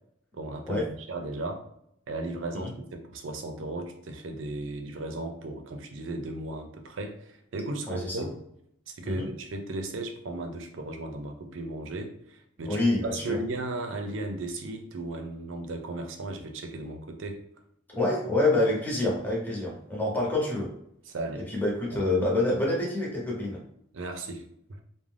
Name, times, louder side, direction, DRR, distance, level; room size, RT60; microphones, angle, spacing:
voice 1, 0.3-1.6 2.1-8.4 8.9-12.8 13.1-17.4 21.1-21.5 21.9-22.0 23.9-24.4 24.7-24.8, right 2 dB, 80° right, 5 dB, 0.5 m, -36 dB
voice 2, 12.7-13.4 17.9-20.7 21.5-23.6, left 2 dB, 10° left, -4 dB, 0.8 m, -27 dB
2.5 x 2.1 x 3.3 m, 0.74 s
head